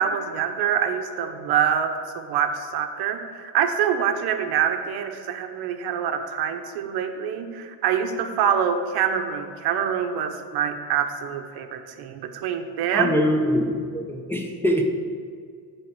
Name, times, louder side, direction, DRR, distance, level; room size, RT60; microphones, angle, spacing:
voice 1, 0.0-13.1, right 8 dB, 65° right, 7 dB, 0.8 m, -25 dB
voice 2, 12.9-14.8, equal, 5° left, 0 dB, 0.6 m, -23 dB
9.6 x 3.6 x 5.9 m, 2.1 s
cardioid pair, 130°, 41 cm